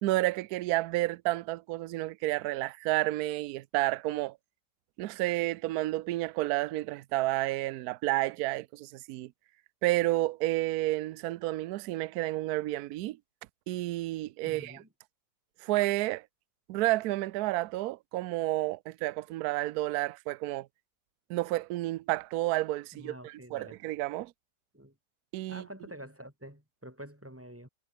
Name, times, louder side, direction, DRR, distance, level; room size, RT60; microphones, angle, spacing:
voice 1, 0.0-4.4 5.0-9.3 9.8-13.2 13.7-14.8 15.6-16.2 16.7-20.7 21.3-24.3 25.3-25.7, right 17 dB, 70° right, 1.0 m, -30 dB
voice 2, 14.4-14.9 22.9-23.8 24.7-25.0 25.5-27.7, right 1 dB, 5° right, 6.9 m, -47 dB
omnidirectional pair, 1.9 m